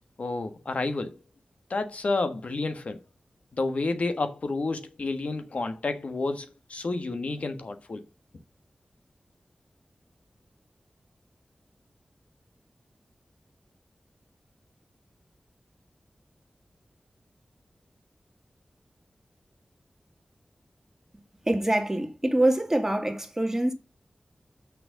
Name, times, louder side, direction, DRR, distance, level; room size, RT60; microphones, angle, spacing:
voice 1, 0.2-1.2 1.7-3.0 3.5-8.0, left 3 dB, 70° left, 1.4 m, -30 dB
voice 2, 21.5-23.7, right 1 dB, 15° right, 2.0 m, -25 dB
6.5 x 6.0 x 6.4 m
wide cardioid pair, 60°, 2 cm